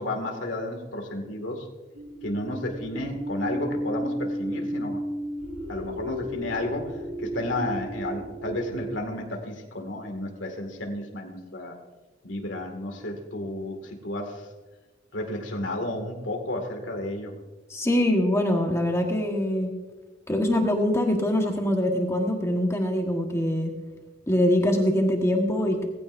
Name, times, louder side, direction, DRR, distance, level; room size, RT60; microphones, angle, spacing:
voice 1, 0.0-1.7 2.2-5.0 5.7-11.8 12.2-14.5 15.1-17.4, left 1 dB, 90° left, 3 dB, 2.2 m, -32 dB
sound 1, 1.9-9.0, right 1 dB, 80° right, 3.9 m, -33 dB
voice 2, 17.7-19.7 20.3-23.7 24.3-25.9, left 1 dB, 15° left, 2 dB, 1.4 m, -23 dB
19.0 x 15.5 x 2.6 m, 1.2 s
head